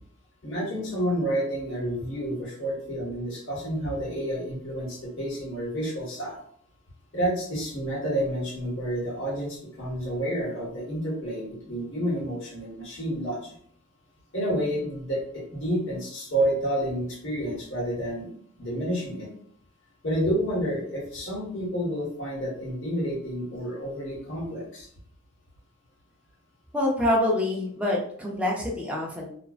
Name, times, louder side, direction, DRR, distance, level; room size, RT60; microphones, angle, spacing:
voice 1, 0.4-6.4 7.1-13.5 14.3-18.3 18.6-19.3 20.0-24.9, equal, 65° left, -5 dB, 1.1 m, -29 dB
voice 2, 26.7-29.3, left 1 dB, 5° right, -2 dB, 0.5 m, -26 dB
2.5 x 2.1 x 2.3 m, 0.62 s
head